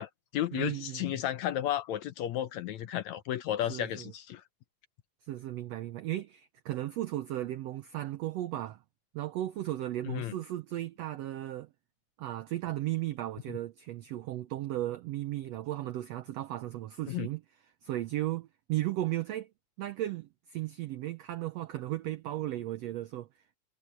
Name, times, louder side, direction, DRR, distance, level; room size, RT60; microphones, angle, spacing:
voice 1, 0.0-4.4 10.1-10.3 17.1-17.3, left 12 dB, 75° left, 1.9 m, -33 dB
voice 2, 0.5-1.1 3.7-4.1 5.3-8.8 9.1-11.7 12.2-17.4 17.8-19.5 19.8-23.3, right 14 dB, 90° right, 1.4 m, -35 dB
omnidirectional pair, 3.8 m